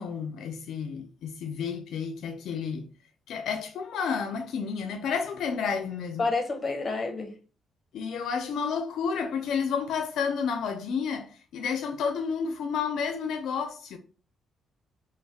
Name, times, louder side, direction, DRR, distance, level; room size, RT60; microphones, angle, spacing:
voice 1, 0.0-2.9 3.3-6.2 7.9-14.0, left 6 dB, 75° left, 0.4 m, -31 dB
voice 2, 6.2-7.3, left 3 dB, 35° left, 0.7 m, -29 dB
3.1 x 2.0 x 4.0 m
cardioid pair, 90°, 0 cm